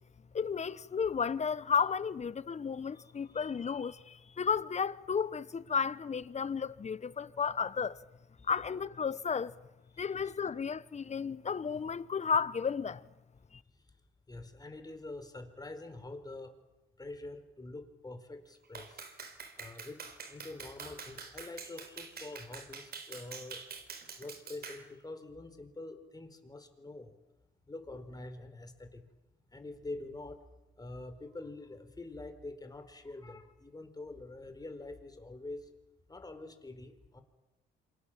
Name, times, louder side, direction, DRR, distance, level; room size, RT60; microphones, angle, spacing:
voice 1, 0.3-8.0 8.4-9.5 10.0-13.1 13.5-13.6, left 6 dB, 35° left, 1.2 m, -33 dB
voice 2, 9.9-10.3 14.3-16.5 17.0-18.9 19.6-20.0 20.3-23.6 24.2-27.1 27.7-29.1 29.5-30.4 30.8-35.7 36.1-37.2, left 2 dB, 20° left, 4.3 m, -45 dB
Clapping, 18.7-24.9, right 5 dB, 50° right, 4.4 m, -46 dB
27.5 x 25.5 x 7.5 m
cardioid pair, 90°, 20 cm